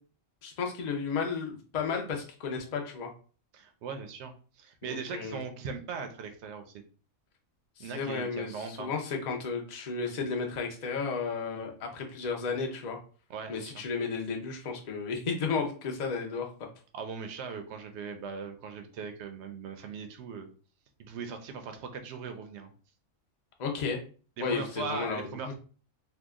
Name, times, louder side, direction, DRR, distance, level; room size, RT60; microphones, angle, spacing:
voice 1, 0.4-3.1 4.8-5.4 7.8-13.0 13.5-16.5 23.6-24.0 24.4-25.3, left 5 dB, 45° left, 2 dB, 0.6 m, -33 dB
voice 2, 3.5-6.8 7.8-8.9 13.3-13.7 16.9-20.5 21.0-22.7 24.4-25.5, right 5 dB, 65° right, 7 dB, 0.8 m, -39 dB
2.8 x 2.2 x 3.5 m, 0.39 s
omnidirectional pair, 1.4 m